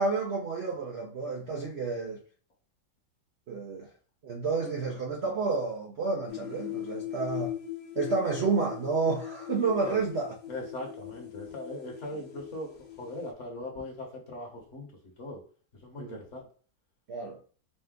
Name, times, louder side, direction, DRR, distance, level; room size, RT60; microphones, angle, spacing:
voice 1, 0.0-2.2 3.5-3.9 4.2-7.5 8.0-10.3 16.0-16.2 17.1-17.4, right 4 dB, 80° right, 0.5 m, -30 dB
sound 1, 6.3-13.3, left 13 dB, 65° left, 1.2 m, -40 dB
voice 2, 10.5-14.9 15.2-15.4 15.8-16.4, left 1 dB, 45° left, 1.3 m, -40 dB
5.2 x 2.2 x 3.6 m
omnidirectional pair, 2.0 m